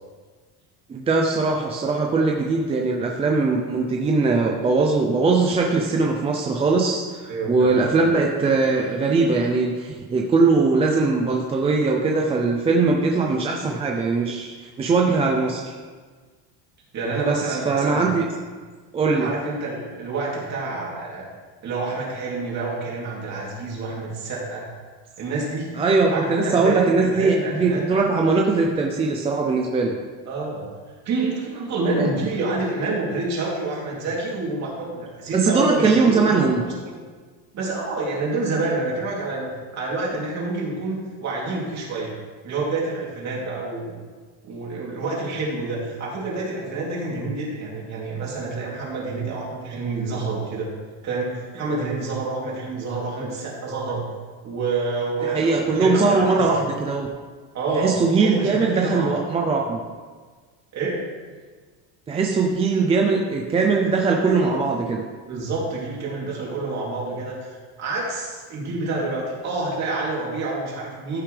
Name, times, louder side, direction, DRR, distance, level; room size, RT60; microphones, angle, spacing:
voice 1, 0.9-15.8 17.2-18.2 18.9-19.3 25.8-29.9 32.0-32.1 35.3-36.6 55.2-57.1 57.7-59.8 62.1-65.0, right 4 dB, 15° right, 0 dB, 0.4 m, -21 dB
voice 2, 7.3-7.8 16.9-18.1 19.2-21.2 21.6-24.7 25.2-25.7 26.1-27.8 30.3-30.7 31.0-37.0 37.5-42.1 42.4-44.0 44.4-50.7 51.0-54.1 54.4-56.6 57.5-59.2 60.7-61.0 65.3-71.2, right 3 dB, 40° right, -4 dB, 3.0 m, -28 dB
14.5 x 6.9 x 3.3 m, 1.5 s
cardioid pair, 165°, 44 cm